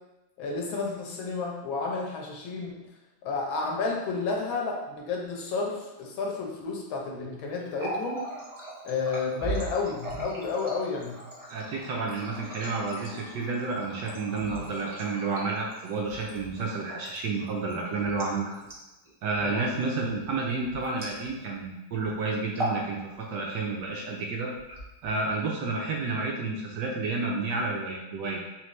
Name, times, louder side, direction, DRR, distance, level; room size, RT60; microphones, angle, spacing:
voice 1, 0.4-2.8 3.2-8.3 8.8-11.2 19.4-19.7, left 4 dB, 75° left, 0 dB, 1.5 m, -31 dB
Water tap faucet, 7.6-21.6 21.9-22.1 22.4-22.9 23.2-23.9 24.5-25.3, right 1 dB, 35° right, 0.5 m, -39 dB
voice 2, 11.5-18.5 19.2-24.5 25.0-28.4, right 3 dB, 75° right, -1 dB, 1.1 m, -30 dB
4.1 x 3.1 x 3.1 m, 1.0 s
omnidirectional pair, 2.2 m